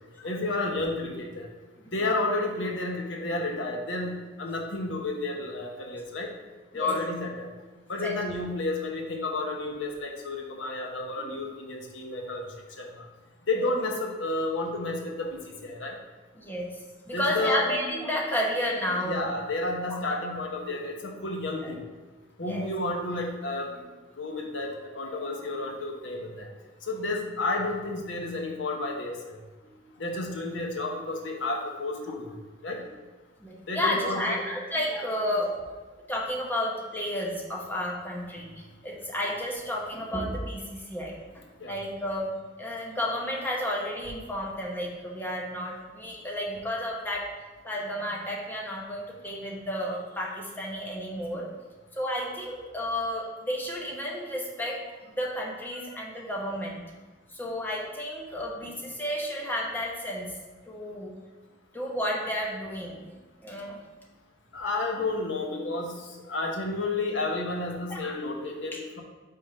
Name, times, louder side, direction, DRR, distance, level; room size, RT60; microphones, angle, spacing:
voice 1, 0.2-1.5 1.9-6.3 6.7-7.5 7.9-12.4 12.8-13.0 13.5-16.0 17.1-17.6 18.9-21.8 22.4-23.7 24.2-26.5 26.9-29.4 30.0-32.3 32.6-32.8 33.7-34.4 41.6-41.8 55.7-55.9 64.5-65.9 66.3-69.0, left 2 dB, 75° left, 1 dB, 1.0 m, -31 dB
voice 2, 16.4-16.7 17.1-19.3 19.8-20.0 21.6-21.7 22.4-22.6 29.7-29.9 33.4-35.5 36.1-38.5 38.8-41.2 41.7-42.3 42.6-47.3 47.6-51.5 51.9-56.8 57.3-60.3 60.7-61.1 61.7-63.0 63.4-63.8 67.9-68.2 68.7-68.8, left 1 dB, 10° left, -3 dB, 1.1 m, -31 dB
5.4 x 3.7 x 5.4 m, 1.3 s
head